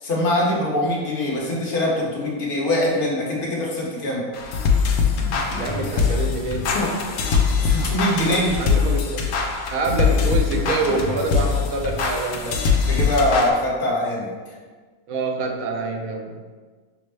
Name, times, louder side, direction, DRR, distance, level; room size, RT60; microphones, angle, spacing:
voice 1, 0.0-4.3 7.6-8.6 10.0-10.1 12.9-14.3, left 1 dB, 45° left, -4 dB, 0.9 m, -23 dB
sound 1, 4.3-13.5, left 5 dB, 85° left, 1.1 m, -22 dB
voice 2, 5.6-7.0 8.2-9.3 9.7-12.7 15.1-16.4, right 3 dB, 70° right, 2 dB, 1.0 m, -26 dB
5.9 x 2.0 x 3.3 m, 1.4 s
omnidirectional pair, 1.6 m